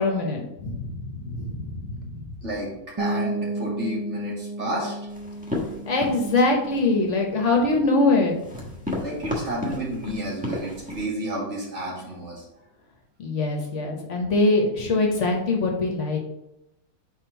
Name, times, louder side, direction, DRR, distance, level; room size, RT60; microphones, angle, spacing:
voice 1, 0.0-2.2 5.9-8.7 13.2-16.2, left 2 dB, 55° left, 2 dB, 1.2 m, -23 dB
voice 2, 2.4-2.7 3.0-5.0 8.9-12.4, right 1 dB, 50° right, -4 dB, 2.1 m, -31 dB
sound 1, 3.0-8.6, right 1 dB, 25° right, 0.5 m, -33 dB
sound 2, 5.1-11.1, left 2 dB, 5° right, 1.1 m, -35 dB
4.5 x 4.3 x 5.6 m, 0.87 s
omnidirectional pair, 1.6 m